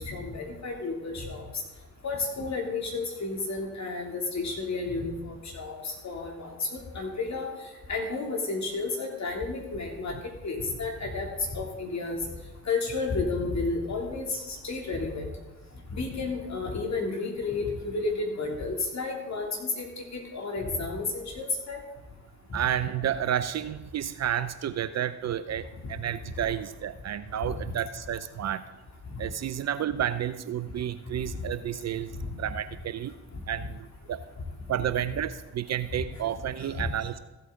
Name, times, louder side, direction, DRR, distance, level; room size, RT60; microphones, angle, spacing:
voice 1, 0.0-1.4 2.0-7.5 7.9-10.1 10.4-11.3 11.5-12.2 12.6-15.3 15.9-21.8 29.1-29.2 32.1-32.2 36.7-36.8, left 3 dB, 45° left, 1 dB, 2.9 m, -32 dB
voice 2, 22.5-28.6 29.2-32.1 32.4-33.1 33.5-34.2 34.7-37.2, right 10 dB, 45° right, 13 dB, 0.5 m, -31 dB
15.0 x 8.2 x 3.8 m, 1.1 s
hypercardioid pair, 45°, 39 cm